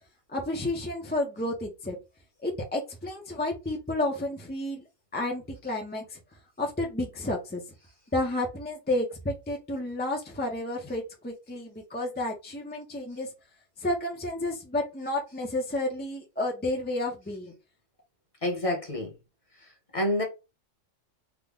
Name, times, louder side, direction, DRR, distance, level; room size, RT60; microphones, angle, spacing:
voice 1, 0.3-2.0 2.4-4.8 5.1-6.2 6.6-7.6 8.1-13.3 13.8-17.5, left 1 dB, 15° left, 0.4 m, -31 dB
voice 2, 18.4-19.1 19.9-20.2, left 1 dB, 30° left, 0.8 m, -27 dB
3.6 x 2.1 x 3.6 m
omnidirectional pair, 1.4 m